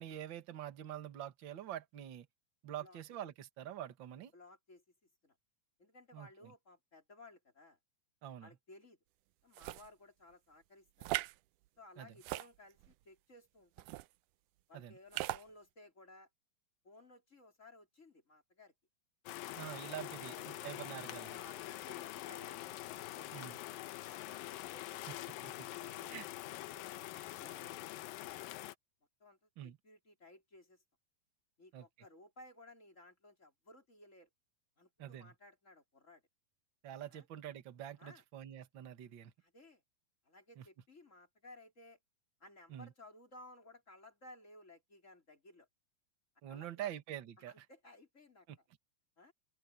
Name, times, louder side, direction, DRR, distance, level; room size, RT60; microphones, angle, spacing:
voice 1, 0.0-2.3 2.6-4.3 6.1-6.5 8.2-8.5 12.0-12.1 14.7-15.0 19.5-21.4 23.3-23.6 25.1-25.7 26.1-26.2 29.6-29.8 31.7-31.9 35.0-35.3 36.8-39.3 40.6-40.7 42.7-42.9 46.4-47.6 48.5-48.6, right 11 dB, 50° right, 1.5 m, -46 dB
voice 2, 4.3-4.8 5.2-5.4 5.8-7.8 8.4-9.0 9.4-11.3 11.8-13.9 14.7-16.3 16.8-18.7 19.4-19.6 20.2-20.9 21.3-22.7 22.9-23.7 24.0-25.4 25.8-26.3 27.4-28.6 29.2-30.8 31.6-34.3 34.8-36.2 37.1-37.3 38.0-38.2 39.4-39.8 40.2-42.0 42.4-45.7 46.5-46.9 47.4-48.6 49.2-49.3, left 1 dB, 20° left, 3.9 m, -59 dB
sound 1, 9.5-9.9 11.0-11.4 12.2-12.9 13.8-14.1 15.1-15.4, right 18 dB, 80° right, 1.9 m, -39 dB
sound 2, 19.3-28.7, left 15 dB, 80° left, 2.6 m, -45 dB
open air
omnidirectional pair, 4.1 m